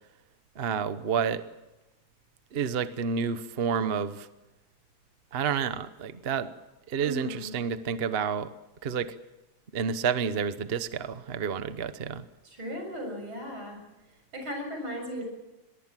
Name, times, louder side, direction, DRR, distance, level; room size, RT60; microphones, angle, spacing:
voice 1, 0.6-1.4 2.5-4.3 5.3-6.5 6.9-8.5 8.8-9.1 9.7-12.2, right 7 dB, 40° right, 12 dB, 0.9 m, -29 dB
voice 2, 7.0-7.5 12.4-13.8 14.3-15.2, equal, 85° right, 3 dB, 8.0 m, -36 dB
23.5 x 22.0 x 7.5 m, 1.0 s
omnidirectional pair, 2.2 m